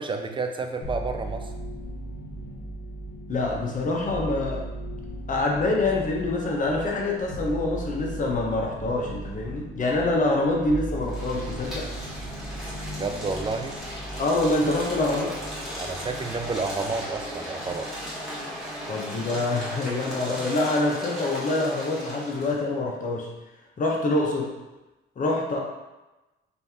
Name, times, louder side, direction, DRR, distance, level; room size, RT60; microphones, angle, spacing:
voice 1, 0.0-1.5 13.0-13.8 15.8-17.9, right 4 dB, 25° right, 5 dB, 0.5 m, -30 dB
sound 1, 0.8-18.2 18.6-19.4, right 1 dB, 65° left, 1.0 m, -38 dB
voice 2, 3.3-4.7 5.3-11.9 14.2-15.3 18.9-23.3 23.8-24.5 25.2-25.6, left 2 dB, 40° left, -1 dB, 1.0 m, -25 dB
sound 2, 11.0-22.6, equal, ahead, 1.4 m, -36 dB
4.2 x 2.8 x 3.5 m, 1.1 s
cardioid pair, 90°, 20 cm